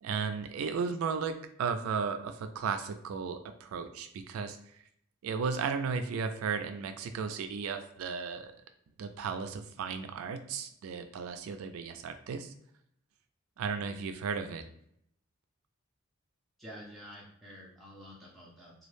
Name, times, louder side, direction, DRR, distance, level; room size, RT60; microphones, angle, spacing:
voice 1, 0.0-4.8 5.2-8.5 9.0-12.5 13.6-14.6, right 5 dB, 85° right, 8 dB, 0.3 m, -35 dB
voice 2, 16.6-18.7, equal, ahead, -5 dB, 0.5 m, -49 dB
2.3 x 2.0 x 3.0 m, 0.70 s
head